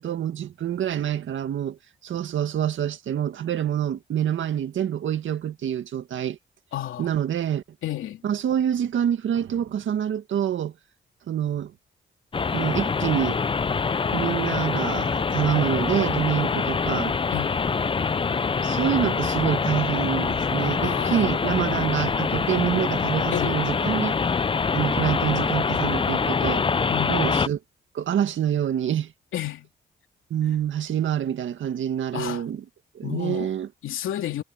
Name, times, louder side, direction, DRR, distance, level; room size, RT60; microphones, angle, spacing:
voice 1, 0.0-1.8 2.0-6.4 7.0-7.6 8.2-10.7 11.3-11.7 12.5-13.4 14.1-17.1 18.6-24.2 24.7-26.7 27.1-27.6 27.9-29.1 30.3-32.6 33.0-33.7, right 10 dB, 75° right, 1.9 m, -26 dB
voice 2, 6.7-7.1 7.8-8.2 17.3-17.6 20.8-21.6 23.3-23.6 26.9-27.3 29.3-29.7 32.1-32.5 33.0-33.5 33.8-34.4, left 12 dB, 85° left, 3.0 m, -31 dB
sound 1, 12.3-27.5, left 5 dB, 25° left, 0.6 m, -25 dB
cardioid pair, 80°, 20 cm